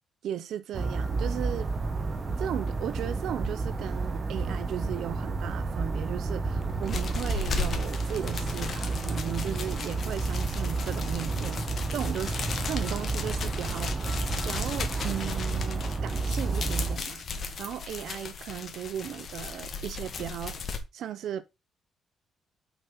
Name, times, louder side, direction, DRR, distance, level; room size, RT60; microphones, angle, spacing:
voice 1, 0.2-1.7 2.4-13.9 14.4-17.2 17.6-21.4, right 10 dB, 75° right, 0.6 m, -36 dB
sound 1, 0.7-17.0, right 3 dB, 35° right, 1.4 m, -31 dB
sound 2, 6.6-20.8, left 5 dB, 50° left, 1.8 m, -36 dB
5.9 x 5.6 x 5.4 m
cardioid pair, 90°, 0 cm